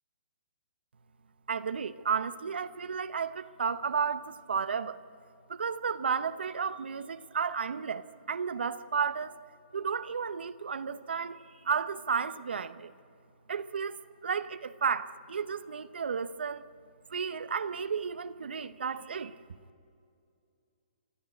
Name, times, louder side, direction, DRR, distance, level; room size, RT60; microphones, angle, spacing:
voice 1, 1.5-5.0 5.5-9.4 9.7-12.9 13.5-14.0 14.2-16.6 17.1-19.4, right 6 dB, 80° right, 11 dB, 0.9 m, -33 dB
26.0 x 14.0 x 8.9 m, 2.4 s
hypercardioid pair, 150°, 6 cm